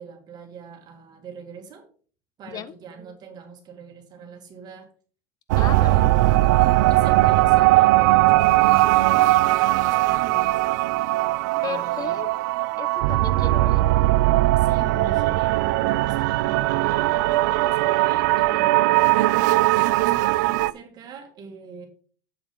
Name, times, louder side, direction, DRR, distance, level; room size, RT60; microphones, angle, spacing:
voice 1, 0.0-1.9 2.4-4.9 5.5-6.2 6.6-10.6 11.6-12.2 14.5-19.1 19.8-21.9, right 5 dB, 45° right, 4 dB, 1.9 m, -42 dB
sound 1, 5.5-20.7, right 17 dB, 80° right, 0.4 m, -19 dB
voice 2, 5.6-5.9 11.6-12.3 12.8-13.8, left 8 dB, 40° left, 14 dB, 0.6 m, -34 dB
7.4 x 4.8 x 5.1 m, 0.42 s
supercardioid pair, 100°, 10 cm